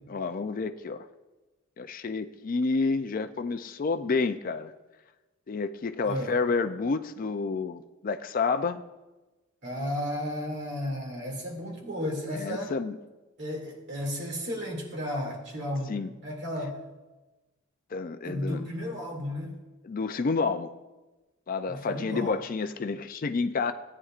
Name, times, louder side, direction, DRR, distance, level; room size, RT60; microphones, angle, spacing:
voice 1, 0.1-1.1 1.8-4.7 5.5-8.8 12.3-13.0 15.9-16.1 17.9-18.6 19.8-20.7 21.5-23.7, left 4 dB, 40° left, 10 dB, 0.4 m, -29 dB
voice 2, 6.0-6.4 9.6-12.7 13.4-15.9 16.2-16.8 18.2-19.5 21.7-22.4, left 1 dB, 55° right, 0 dB, 2.4 m, -33 dB
17.0 x 9.6 x 2.5 m, 1.1 s
head